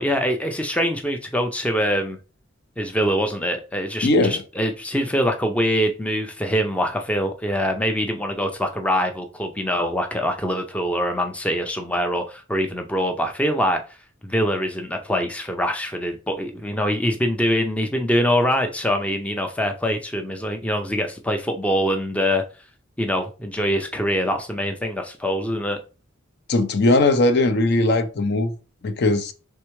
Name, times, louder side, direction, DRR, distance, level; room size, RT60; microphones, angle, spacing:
voice 1, 0.0-2.2 2.8-13.8 14.2-22.4 23.0-25.8, equal, 5° left, 0.4 m, -24 dB
voice 2, 4.0-4.4 26.5-28.5 28.8-29.3, left 2 dB, 55° left, 0.5 m, -19 dB
4.5 x 3.4 x 3.1 m
head